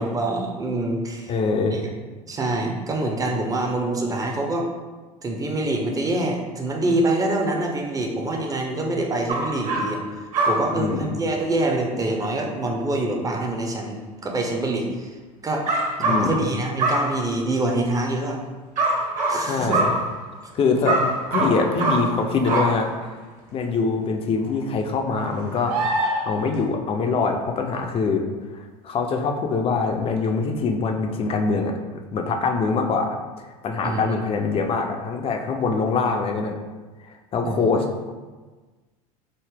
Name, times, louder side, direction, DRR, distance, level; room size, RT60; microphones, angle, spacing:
voice 1, 0.0-1.3 1.7-1.9 2.3-4.7 5.2-10.0 10.5-15.1 15.4-15.7 16.0-18.4 19.3-19.8 20.8-21.0 33.8-34.2 37.4-37.7, right 2 dB, 20° right, 1 dB, 0.6 m, -25 dB
voice 2, 1.3-1.8 10.7-11.1 16.0-16.4 19.4-19.9 20.5-21.0 21.3-22.9 23.5-25.8 26.3-28.3 28.5-31.7 32.1-36.6 37.3-37.9, left 4 dB, 30° left, 4 dB, 0.4 m, -24 dB
sound 1, 9.3-10.1 10.3-10.9 15.7-16.5 16.8-17.4 18.8-20.5 20.8-23.1 23.5-23.6 24.4-24.6 25.1-26.1 26.5-26.6, right 2 dB, 40° right, 1.0 m, -25 dB
sound 2, 25.7-26.6 30.2-30.3, right 1 dB, 70° right, 0.6 m, -25 dB
3.9 x 2.0 x 3.4 m, 1.3 s
hypercardioid pair, 75°, 19 cm